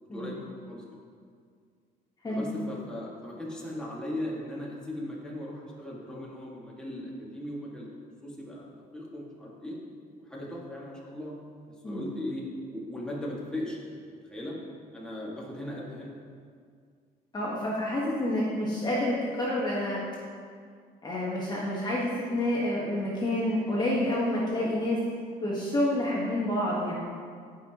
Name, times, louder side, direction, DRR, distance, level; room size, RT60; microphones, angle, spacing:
voice 1, 0.1-1.0 2.3-7.9 8.2-9.8 10.2-11.3 11.8-12.4 12.7-13.8 14.1-14.6 14.9-16.1, left 1 dB, 5° left, -5 dB, 1.9 m, -38 dB
voice 2, 17.3-20.0 21.0-25.0 25.4-26.9, left 1 dB, 25° left, -6 dB, 1.4 m, -28 dB
14.0 x 5.5 x 3.0 m, 2.1 s
cardioid pair, 110°, 17 cm